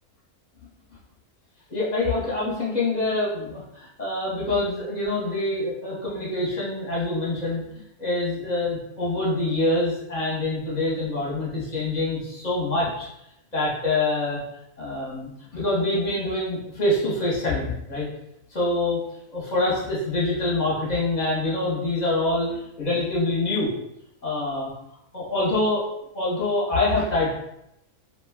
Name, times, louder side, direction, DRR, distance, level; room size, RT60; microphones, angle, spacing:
voice 1, 1.7-7.6 8.0-13.1 13.5-14.4 14.8-18.1 18.5-19.0 19.3-23.7 24.2-24.7 25.1-25.8 26.1-27.3, left 2 dB, 35° left, -6 dB, 0.8 m, -25 dB
2.7 x 2.2 x 3.4 m, 0.81 s
omnidirectional pair, 1.5 m